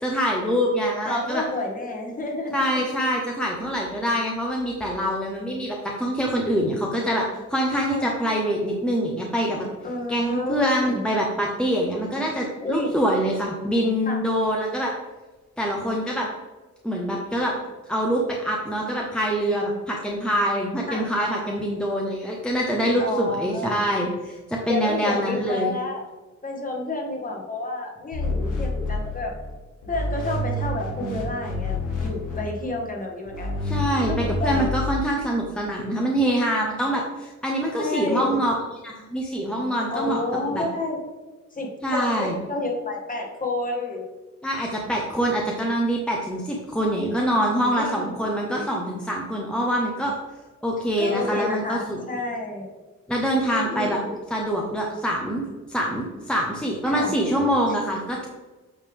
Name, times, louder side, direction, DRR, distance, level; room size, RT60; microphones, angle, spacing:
voice 1, 0.0-1.4 2.5-9.7 10.1-14.9 15.6-16.3 16.8-17.5 17.9-25.7 33.7-38.6 38.8-40.2 40.5-40.6 41.8-42.4 44.4-50.2 50.6-52.0 53.1-54.0 54.3-55.4 55.7-58.3, equal, 5° left, -2 dB, 0.8 m, -25 dB
voice 2, 1.1-2.8 7.7-8.1 9.8-11.0 12.6-13.0 14.1-14.2 20.9-21.1 23.0-23.8 24.7-26.1 26.4-29.3 29.9-33.8 34.0-34.7 37.8-38.4 39.9-41.0 41.5-44.1 47.8-48.2 51.0-52.7 53.4-54.1 56.9-57.1, left 2 dB, 25° left, 0 dB, 1.6 m, -30 dB
sound 1, 28.1-29.5 29.8-32.7 33.3-35.0, left 2 dB, 80° left, 1.8 m, -28 dB
8.4 x 3.3 x 3.5 m, 1.2 s
cardioid pair, 90°, 30 cm